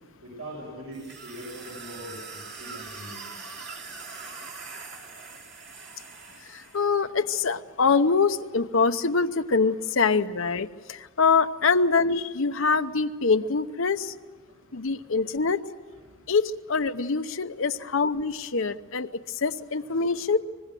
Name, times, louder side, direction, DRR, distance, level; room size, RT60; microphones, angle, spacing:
voice 1, 0.2-3.4 14.5-15.1 16.1-16.2 20.1-20.2, equal, 85° right, -3 dB, 6.3 m, -42 dB
sound 1, 0.9-6.9, right 4 dB, 50° right, 3.0 m, -42 dB
voice 2, 6.4-14.1 14.7-15.6 16.3-20.4, left 4 dB, 65° left, 9 dB, 0.8 m, -24 dB
24.5 x 20.0 x 7.6 m, 1.4 s
head